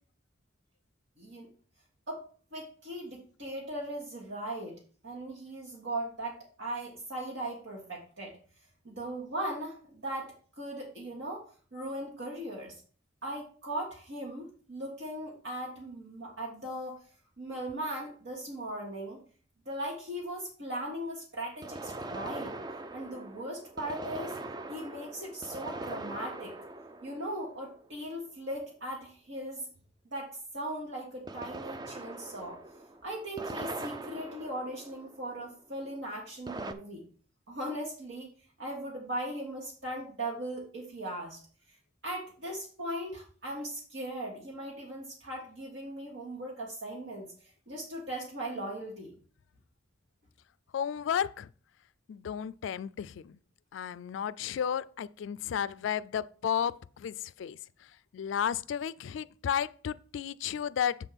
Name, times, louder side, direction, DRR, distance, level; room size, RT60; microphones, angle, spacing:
voice 1, 1.2-1.5 2.1-2.2 2.5-8.4 8.8-11.4 11.7-12.7 13.2-17.0 17.4-19.2 19.6-22.5 22.9-24.4 24.7-26.5 27.0-29.7 30.1-32.6 33.0-37.0 37.5-38.3 38.6-41.4 41.7-41.8 42.0-49.1, right 1 dB, 70° right, 1.5 m, -38 dB
sound 1, 17.7-17.8 21.6-28.1 31.3-35.5 36.5-36.7, right 2 dB, 20° right, 0.4 m, -42 dB
voice 2, 50.7-51.5 52.1-53.4 53.7-57.6 58.1-61.0, left 8 dB, 75° left, 0.3 m, -33 dB
7.5 x 3.6 x 5.7 m
head